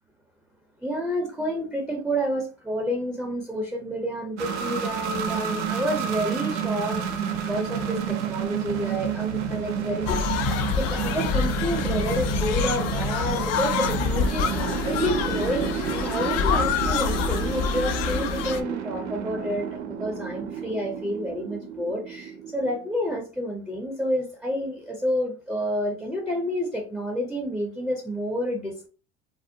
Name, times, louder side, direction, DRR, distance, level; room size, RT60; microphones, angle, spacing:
voice 1, 0.8-28.9, equal, ahead, 0.5 m, -29 dB
sound 1, 4.4-22.9, right 7 dB, 85° right, 0.5 m, -30 dB
sound 2, 10.0-18.6, left 6 dB, 50° left, 0.4 m, -27 dB
2.6 x 2.0 x 2.7 m
hypercardioid pair, 70°, 34 cm